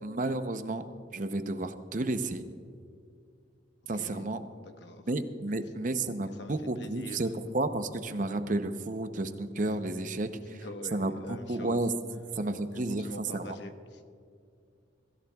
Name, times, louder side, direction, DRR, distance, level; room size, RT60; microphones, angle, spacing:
voice 1, 0.0-0.8 1.1-2.5 3.9-4.4 5.1-7.3 7.5-10.6 10.9-11.9 12.4-13.6, right 2 dB, 40° right, 9 dB, 0.7 m, -32 dB
voice 2, 3.9-4.3 4.6-5.0 6.4-7.3 10.5-11.8 12.7-14.0, left 1 dB, 65° left, 6 dB, 1.1 m, -44 dB
24.0 x 14.5 x 2.3 m, 2.3 s
head